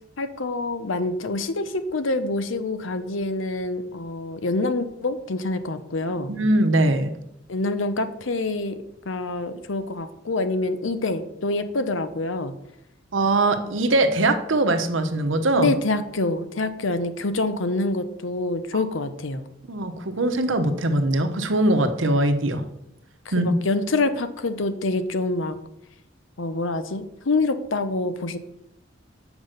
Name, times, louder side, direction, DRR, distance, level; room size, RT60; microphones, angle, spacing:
voice 1, 0.2-6.3 7.5-12.5 15.6-19.5 23.4-25.6 26.4-28.4, left 2 dB, 75° left, 11 dB, 0.8 m, -26 dB
voice 2, 6.3-7.1 13.1-15.7 18.7-18.8 19.7-22.6 23.3-23.5, right 2 dB, 75° right, 7 dB, 1.0 m, -21 dB
7.2 x 6.0 x 6.5 m, 0.83 s
head